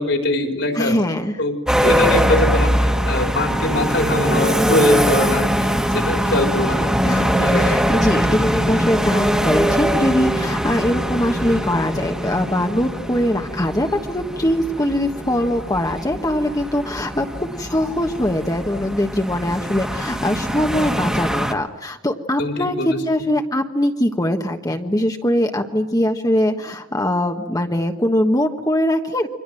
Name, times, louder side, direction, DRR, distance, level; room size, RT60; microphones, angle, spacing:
voice 1, 0.0-0.9 1.4-7.8 22.4-23.0, left 2 dB, 65° left, 5 dB, 3.9 m, -23 dB
voice 2, 0.7-1.4 7.1-29.3, left 1 dB, 20° left, 4 dB, 1.3 m, -22 dB
sound 1, 1.7-21.5, equal, 5° right, 1.7 m, -22 dB
29.5 x 24.5 x 7.8 m, 0.99 s
head